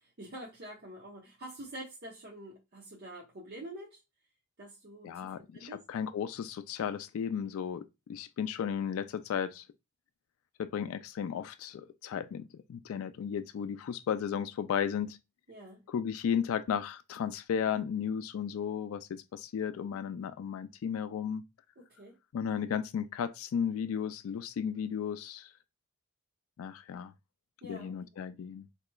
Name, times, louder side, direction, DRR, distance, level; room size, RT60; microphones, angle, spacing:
voice 1, 0.0-4.0 4.6-5.8 15.5-15.8 21.8-22.2 27.6-28.2, right 1 dB, 50° right, 0.7 m, -47 dB
voice 2, 5.0-9.6 10.6-15.2 15.9-21.4 22.3-25.5 26.6-27.1 27.6-28.7, left 8 dB, 70° left, 0.3 m, -34 dB
4.2 x 2.8 x 2.2 m
head